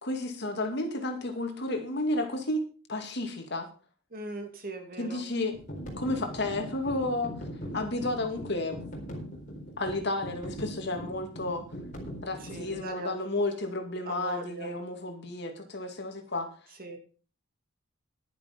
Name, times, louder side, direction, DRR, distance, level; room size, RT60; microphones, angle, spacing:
voice 1, 0.0-2.6 2.9-3.7 5.0-5.5 6.0-7.3 7.7-8.8 9.8-11.6 12.2-16.5, left 2 dB, 55° left, 5 dB, 2.4 m, -32 dB
voice 2, 4.1-5.2 12.4-13.2 14.0-14.7 16.8-17.0, right 2 dB, 45° right, 5 dB, 2.6 m, -39 dB
sound 1, 5.5-12.9, equal, 40° left, 4.2 m, -41 dB
11.0 x 10.5 x 5.2 m, 0.37 s
head